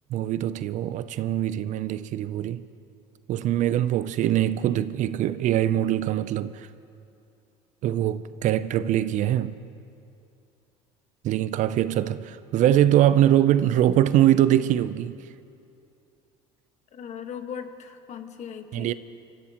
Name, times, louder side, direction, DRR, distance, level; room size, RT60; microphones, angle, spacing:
voice 1, 0.1-2.6 3.3-6.7 7.8-9.6 11.2-15.2 18.7-18.9, right 12 dB, 55° right, 0.5 m, -23 dB
voice 2, 16.9-18.9, left 7 dB, 50° left, 1.5 m, -38 dB
24.5 x 15.0 x 3.0 m
supercardioid pair, 80°, 15 cm